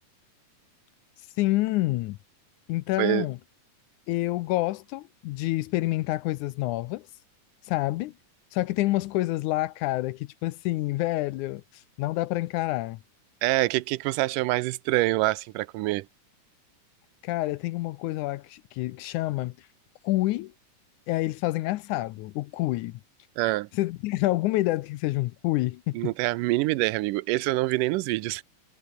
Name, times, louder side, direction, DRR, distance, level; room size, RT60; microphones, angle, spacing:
voice 1, 1.4-2.2 2.7-3.4 4.1-7.1 7.6-8.1 8.5-13.0 17.2-19.5 20.0-20.5 21.1-23.0 23.7-26.0, left 18 dB, 80° left, 2.0 m, -28 dB
voice 2, 13.4-16.1 23.4-23.7 26.0-28.4, right 19 dB, 90° right, 2.2 m, -25 dB
omnidirectional pair, 3.7 m